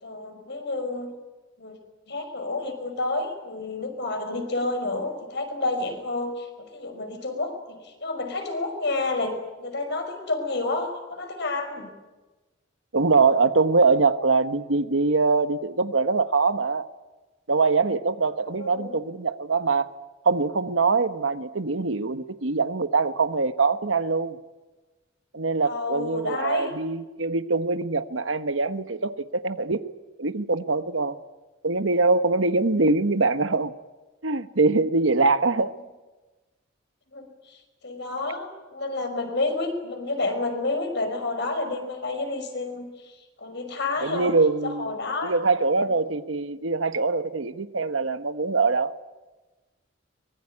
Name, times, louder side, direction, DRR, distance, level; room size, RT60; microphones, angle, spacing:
voice 1, 0.0-1.1 1.6-1.8 2.1-11.9 18.4-18.9 25.7-26.7 37.1-37.6 37.8-43.1 43.4-44.3 44.6-45.3, left 2 dB, 60° left, 6 dB, 5.6 m, -30 dB
voice 2, 12.9-16.9 17.5-19.9 20.2-24.4 25.3-29.8 30.2-31.1 31.6-33.7 34.2-35.7 44.0-44.9 45.2-48.9, right 3 dB, 80° right, 11 dB, 1.3 m, -23 dB
24.0 x 22.0 x 9.8 m, 1.2 s
head